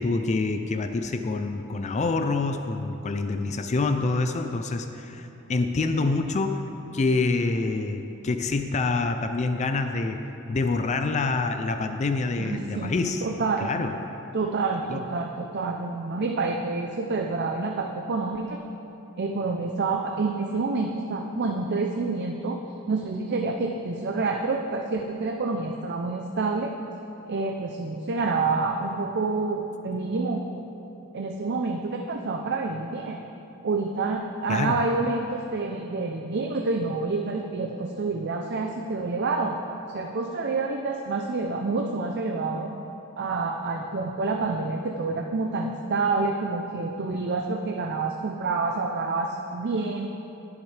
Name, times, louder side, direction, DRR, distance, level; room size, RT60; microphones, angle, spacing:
voice 1, 0.0-6.6 6.9-10.2 10.5-13.3 13.6-13.9 14.9-15.0 34.5-34.8, left 3 dB, 35° left, 7 dB, 0.4 m, -26 dB
voice 2, 12.4-12.9 13.2-13.7 14.3-18.6 19.2-22.6 22.9-26.7 27.3-30.4 31.1-33.2 33.6-39.6 39.9-42.7 43.2-50.1, right 3 dB, 50° right, 3 dB, 0.5 m, -28 dB
19.5 x 7.2 x 3.3 m, 3.0 s
head